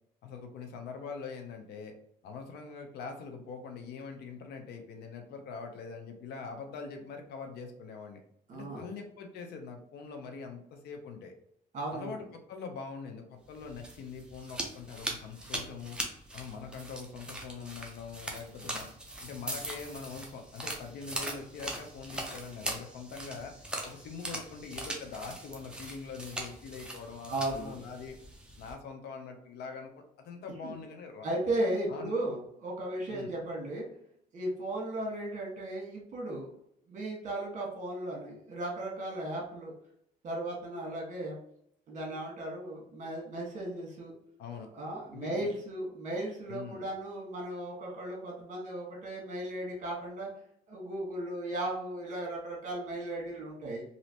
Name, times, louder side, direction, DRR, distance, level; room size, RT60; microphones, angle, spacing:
voice 1, 0.2-1.9 2.2-8.2 8.5-11.3 11.9-16.0 16.3-18.9 19.2-23.5 23.8-28.2 28.6-29.9 30.2-31.3 31.9-32.1 33.1-33.3 44.4-44.7 45.1-45.5 46.5-46.9, left 5 dB, 75° left, 4 dB, 0.7 m, -43 dB
voice 2, 8.5-8.9 11.7-12.2 27.3-27.8 30.6-30.7 31.2-33.9 34.3-36.5 36.9-39.7 40.2-41.4 41.9-44.1 44.7-50.3 50.7-53.8, right 1 dB, 45° right, -2 dB, 1.4 m, -36 dB
sound 1, 13.5-28.7, right 1 dB, 5° right, 0.7 m, -41 dB
3.1 x 2.7 x 2.9 m, 0.72 s
cardioid pair, 110°, 17 cm